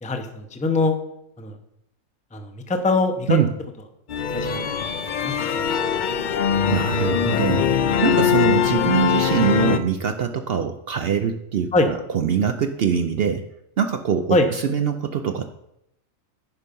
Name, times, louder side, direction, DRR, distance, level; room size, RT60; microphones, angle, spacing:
voice 1, 0.0-1.0 1.4-1.6 2.3-3.4 4.3-5.9 11.7-11.9 14.3-14.5, left 2 dB, 10° left, 5 dB, 0.5 m, -23 dB
sound 1, 4.1-9.8, left 7 dB, 55° left, 0.5 m, -21 dB
voice 2, 6.7-13.4 13.8-15.5, right 7 dB, 60° right, 7 dB, 0.6 m, -23 dB
9.8 x 5.5 x 5.3 m, 0.81 s
omnidirectional pair, 1.4 m